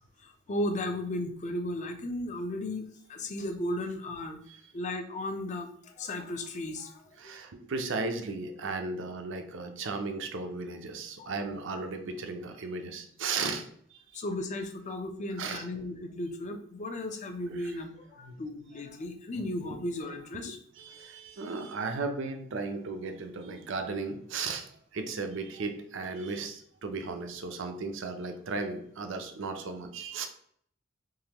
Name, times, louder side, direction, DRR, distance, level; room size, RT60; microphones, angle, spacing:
voice 1, 0.2-4.4 4.7-7.4 11.2-11.4 14.1-20.6, left 1 dB, 35° left, 5 dB, 0.5 m, -35 dB
voice 2, 7.2-14.2 15.4-15.6 17.5-17.7 18.2-18.4 20.5-30.3, right 3 dB, 65° right, 6 dB, 0.6 m, -36 dB
3.8 x 3.1 x 2.9 m, 0.63 s
head